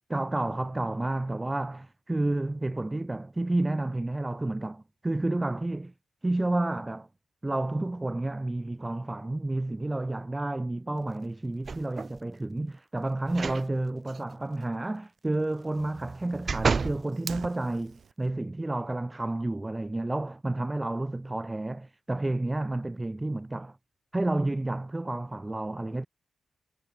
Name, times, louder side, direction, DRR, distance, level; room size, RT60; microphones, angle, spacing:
voice 1, 0.1-5.9 6.2-7.1 7.4-23.8 24.1-26.1, right 2 dB, 20° right, 2.8 m, -30 dB
sound 1, 11.6-12.2 13.3-13.7 14.1-14.2 15.8-17.0 17.6-17.7, right 5 dB, 50° right, 0.9 m, -30 dB
Fire, 17.1-18.1, right 7 dB, 70° right, 6.3 m, -40 dB
cardioid pair, 70°, 0 cm